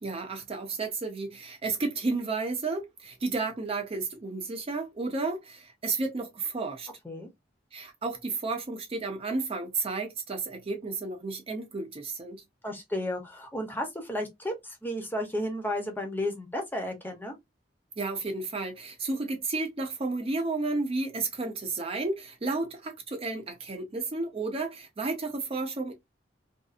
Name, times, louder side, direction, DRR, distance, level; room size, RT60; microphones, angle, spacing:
voice 1, 0.0-6.9 7.7-12.4 18.0-25.9, right 3 dB, 35° right, 0.5 m, -32 dB
voice 2, 12.6-17.3, left 1 dB, 10° left, 0.7 m, -33 dB
2.6 x 2.4 x 2.4 m
head